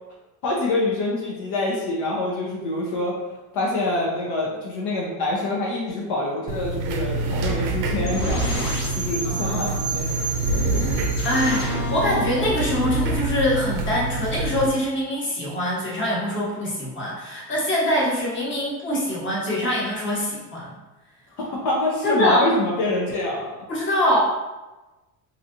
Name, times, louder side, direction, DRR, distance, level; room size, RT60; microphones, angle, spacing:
voice 1, 0.4-3.2 3.5-8.5 8.9-10.3 10.7-10.9 21.4-23.5, left 2 dB, 60° left, -4 dB, 0.9 m, -26 dB
sound 1, 6.5-14.7, right 2 dB, 55° right, 0.6 m, -26 dB
sound 2, 8.1-13.9, equal, 90° left, 1.3 m, -31 dB
voice 2, 9.2-9.8 11.2-20.7 22.0-22.5 23.7-24.2, left 1 dB, 25° left, -6 dB, 1.2 m, -24 dB
3.1 x 2.8 x 2.6 m, 1.1 s
supercardioid pair, 120°, 46 cm